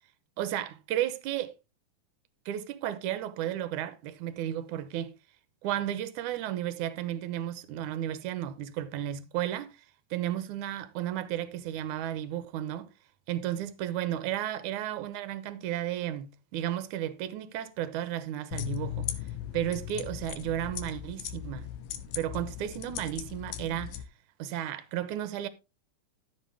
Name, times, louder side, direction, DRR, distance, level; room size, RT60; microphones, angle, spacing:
voice 1, 0.4-1.5 2.5-5.1 5.6-9.8 10.1-12.9 13.3-19.1 19.5-21.7 22.2-24.0 24.4-25.5, right 12 dB, 70° right, 2.2 m, -33 dB
sound 1, 18.5-24.0, left 11 dB, 85° left, 2.8 m, -38 dB
13.5 x 7.7 x 3.5 m
omnidirectional pair, 4.0 m